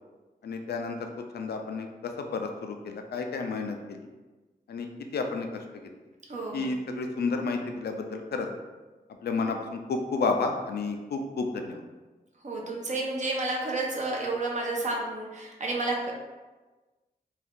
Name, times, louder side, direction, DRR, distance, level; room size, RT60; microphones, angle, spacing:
voice 1, 0.4-1.1 1.3-4.0 4.7-4.9 5.1-5.6 6.5-8.5 9.2-11.8, left 4 dB, 80° left, 4 dB, 0.4 m, -31 dB
voice 2, 6.3-6.7 12.4-16.1, right 2 dB, 45° right, -1 dB, 0.7 m, -31 dB
2.6 x 2.3 x 3.5 m, 1.2 s
wide cardioid pair, 75°, 16 cm